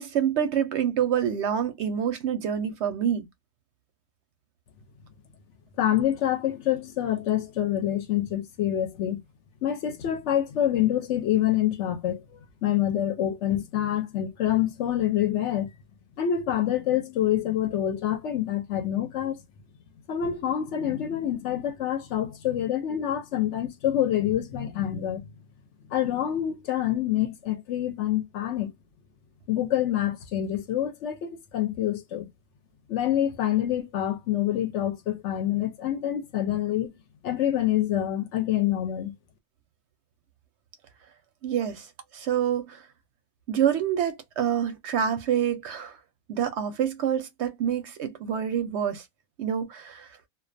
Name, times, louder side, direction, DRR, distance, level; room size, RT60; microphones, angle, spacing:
voice 1, 0.0-3.3 41.4-41.9 42.1-42.8 43.5-45.9 46.3-49.0 49.4-50.1, right 9 dB, 65° right, 0.8 m, -27 dB
voice 2, 5.8-9.2 9.6-15.7 16.2-19.4 20.1-25.2 25.9-28.7 29.5-32.3 32.9-36.9 37.2-39.1, left 11 dB, 70° left, 0.8 m, -26 dB
2.3 x 2.2 x 2.5 m
omnidirectional pair, 1.4 m